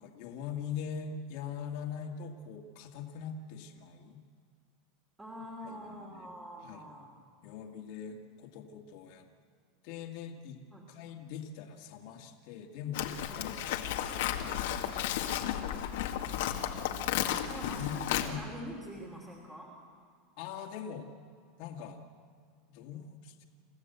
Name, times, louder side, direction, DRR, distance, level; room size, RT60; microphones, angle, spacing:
voice 1, 0.0-4.2 5.6-6.3 6.6-6.9 7.4-9.3 9.8-10.6 10.9-13.1 13.3-13.5 14.3-15.7 16.2-16.7 17.8-18.0 18.3-18.4 20.4-21.1 21.6-22.0 22.7-23.5, left 7 dB, 55° left, 2 dB, 2.2 m, -42 dB
voice 2, 5.2-7.2 10.7-10.9 13.3-13.5 16.5-19.7, equal, 10° right, -3 dB, 3.0 m, -46 dB
Livestock farm animals working animals, 12.9-18.3, left 11 dB, 75° left, 1.8 m, -33 dB
28.5 x 15.0 x 8.1 m, 2.2 s
supercardioid pair, 150°, 0 cm